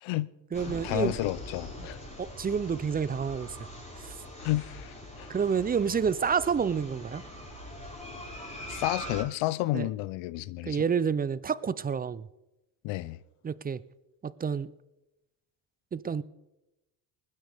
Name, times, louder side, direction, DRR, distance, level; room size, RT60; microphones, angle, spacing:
voice 1, 0.0-0.3 0.7-2.0 4.4-5.3 8.7-10.9 12.8-13.2, left 17 dB, 75° left, 0.7 m, -31 dB
sound 1, 0.5-9.2, equal, 15° left, 5.3 m, -42 dB
voice 2, 0.5-1.1 2.2-3.6 4.0-4.1 5.3-7.2 9.7-9.9 10.6-12.3 13.4-13.8 14.2-14.7 15.9-16.2, right 6 dB, 20° right, 0.4 m, -29 dB
20.0 x 9.8 x 3.5 m
supercardioid pair, 80°, 48 cm